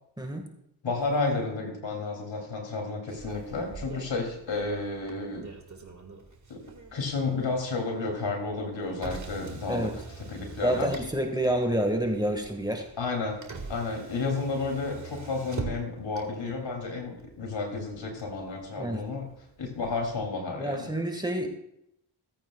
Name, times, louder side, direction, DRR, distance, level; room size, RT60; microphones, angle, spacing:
voice 1, 0.8-5.5 6.5-6.6 6.9-9.9 10.2-10.9 13.0-13.4 13.7-19.3 19.6-20.9, left 3 dB, 70° left, 1 dB, 2.9 m, -31 dB
Motor vehicle (road), 3.1-20.2, right 4 dB, 40° right, 1.9 m, -44 dB
voice 2, 10.6-12.8 18.8-19.0 20.6-21.5, right 1 dB, 10° right, 3 dB, 1.7 m, -28 dB
17.5 x 8.7 x 2.3 m, 0.80 s
supercardioid pair, 45°, 47 cm